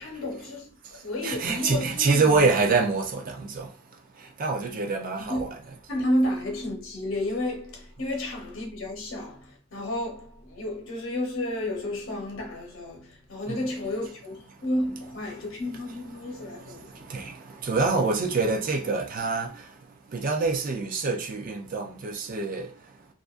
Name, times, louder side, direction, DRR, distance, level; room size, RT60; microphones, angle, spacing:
voice 1, 0.0-2.5 5.2-5.5 5.9-17.1, left 1 dB, 65° left, 0.9 m, -31 dB
voice 2, 0.8-5.6 13.5-13.6 14.5-14.6 16.2-23.1, right 4 dB, 40° right, 0.4 m, -27 dB
2.5 x 2.4 x 2.4 m
head